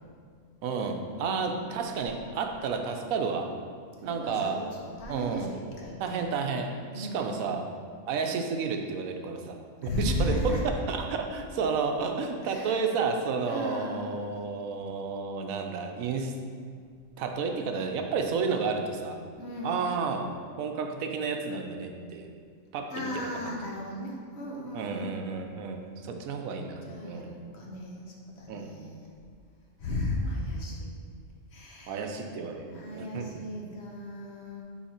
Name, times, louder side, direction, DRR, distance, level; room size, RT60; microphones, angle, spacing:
voice 1, 0.6-3.5 4.0-4.6 5.1-5.6 6.0-7.7 8.1-16.3 17.2-19.2 19.6-22.3 22.7-23.5 24.7-27.4 28.5-28.7 31.9-33.3, right 5 dB, 85° right, 4 dB, 1.1 m, -31 dB
voice 2, 1.1-1.5 4.0-6.2 6.9-7.3 9.8-10.6 12.5-12.8 13.5-14.3 15.2-15.3 19.4-19.8 22.9-25.2 26.8-29.0 29.8-30.9 31.5-32.2 32.7-34.6, left 1 dB, 55° left, -2 dB, 1.1 m, -35 dB
5.6 x 4.6 x 4.3 m, 2.1 s
omnidirectional pair, 1.4 m